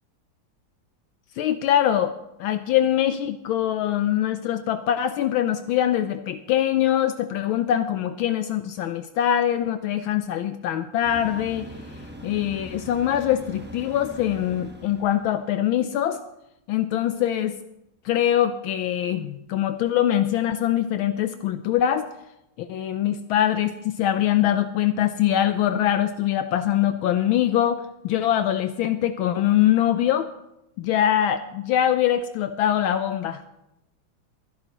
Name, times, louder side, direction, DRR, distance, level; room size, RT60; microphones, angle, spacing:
voice 1, 1.4-11.7 12.2-16.2 16.7-17.6 18.0-22.1 22.6-30.3 30.8-33.4, left 11 dB, 75° left, 9 dB, 1.4 m, -23 dB
sound 1, 11.0-15.5, equal, 10° right, 0.5 m, -41 dB
23.0 x 11.5 x 3.0 m, 0.87 s
omnidirectional pair, 2.3 m